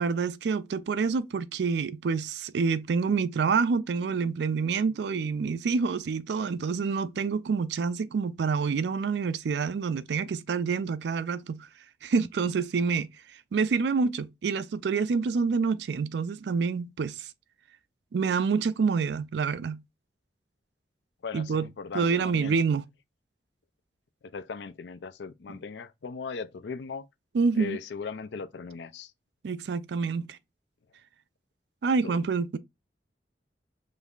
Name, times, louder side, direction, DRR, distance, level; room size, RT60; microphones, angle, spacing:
voice 1, 0.0-11.7 12.0-13.1 13.5-17.3 18.1-19.8 21.3-21.7 21.9-22.8 27.3-27.8 29.4-30.4 31.8-32.6, right 5 dB, 75° right, 0.4 m, -27 dB
voice 2, 21.2-22.6 24.3-27.1 27.6-29.1 32.0-32.2, left 5 dB, 85° left, 0.5 m, -38 dB
5.1 x 3.1 x 2.4 m
head